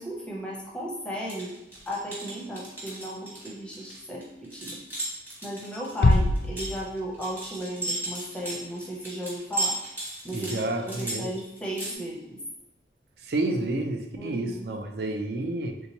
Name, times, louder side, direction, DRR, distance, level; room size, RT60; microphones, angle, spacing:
voice 1, 0.0-1.6 1.9-4.8 5.4-9.8 10.2-12.4 14.2-14.7, equal, 5° left, -4 dB, 0.6 m, -35 dB
sound 1, 1.2-11.9, right 2 dB, 10° right, 1.0 m, -35 dB
Bass drum, 6.0-7.4, left 2 dB, 60° left, 0.3 m, -23 dB
voice 2, 10.3-11.3 13.2-15.8, right 2 dB, 65° right, 5 dB, 0.4 m, -30 dB
3.4 x 2.8 x 2.9 m, 0.93 s
head